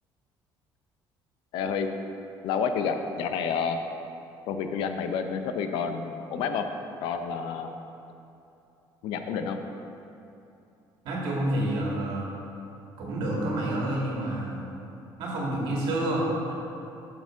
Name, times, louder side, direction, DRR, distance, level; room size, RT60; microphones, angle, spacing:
voice 1, 1.5-1.9 2.4-3.8 4.5-6.7 7.0-7.7 9.0-9.6, left 6 dB, 85° left, 7 dB, 0.7 m, -29 dB
voice 2, 11.0-12.3 13.0-14.6 15.2-16.5, right 1 dB, 70° right, -3 dB, 2.1 m, -28 dB
8.1 x 6.8 x 4.9 m, 2.8 s
cardioid pair, 175°, 8 cm